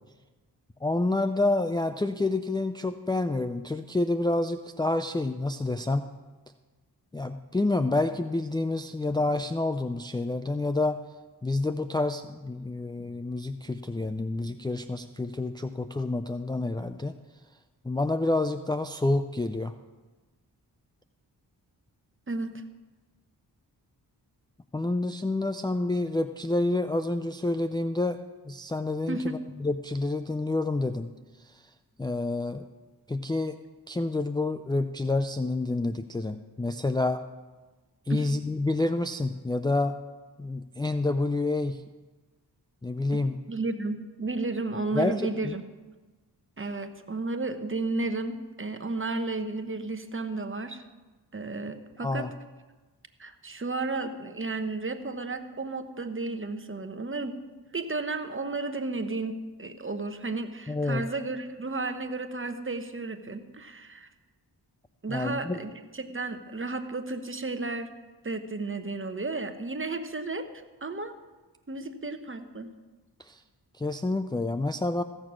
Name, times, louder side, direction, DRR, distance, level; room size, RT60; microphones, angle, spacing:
voice 1, 0.8-6.1 7.1-11.0 11.4-17.1 17.8-19.7 24.7-28.2 28.5-31.1 31.5-31.6 32.0-32.7 33.1-33.6 33.9-37.2 38.1-40.0 40.4-41.8 42.8-43.4 44.9-45.5 52.0-52.3 60.7-61.0 65.1-65.6 73.3-73.4 73.8-75.0, left 2 dB, 10° left, 7 dB, 0.5 m, -28 dB
voice 2, 22.3-22.6 29.1-29.4 38.1-38.3 43.1-43.2 43.5-45.6 46.6-50.8 51.3-52.3 53.2-57.4 57.7-64.1 65.0-67.9 68.2-71.1 71.7-72.7, right 3 dB, 30° right, 7 dB, 1.1 m, -33 dB
15.5 x 6.7 x 6.1 m, 1.3 s
cardioid pair, 50°, 42 cm